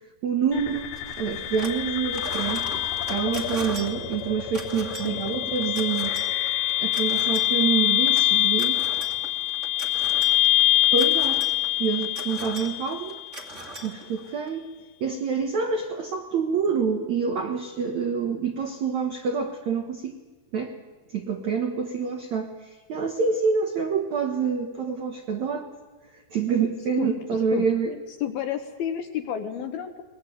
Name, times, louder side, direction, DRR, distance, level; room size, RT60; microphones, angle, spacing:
voice 1, 0.2-6.2 6.8-8.9 10.9-11.4 11.8-13.2 13.8-14.7 15.0-20.2 20.5-20.8 21.1-25.7 26.1-28.0, right 6 dB, 75° right, 5 dB, 1.7 m, -27 dB
sound 1, 0.5-13.5, left 15 dB, 85° left, 4.7 m, -25 dB
sound 2, 1.0-1.8 2.1-14.5, right 2 dB, 25° right, 1.6 m, -40 dB
voice 2, 5.0-5.4 24.8-24.9 27.0-27.1 27.5-27.7 28.2-30.0, left 9 dB, 70° left, 7 dB, 2.6 m, -31 dB
21.5 x 21.0 x 9.2 m, 1.2 s
omnidirectional pair, 5.4 m